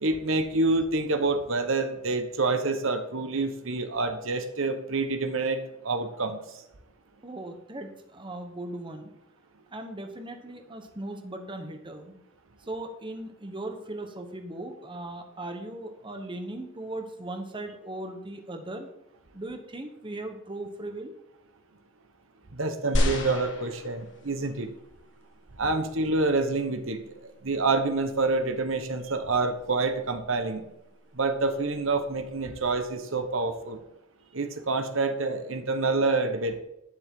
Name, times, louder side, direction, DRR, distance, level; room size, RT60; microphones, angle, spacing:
voice 1, 0.0-6.4 22.5-24.7 25.6-30.6 31.1-33.8 34.3-36.6, right 3 dB, 65° right, 7 dB, 1.2 m, -27 dB
voice 2, 7.2-9.1 9.7-12.2 12.6-18.9 19.3-21.1, right 1 dB, 25° right, 5 dB, 1.2 m, -38 dB
sound 1, 22.9-24.4 25.2-25.3, left 1 dB, 60° left, 1.9 m, -28 dB
11.5 x 9.9 x 3.8 m, 0.87 s
head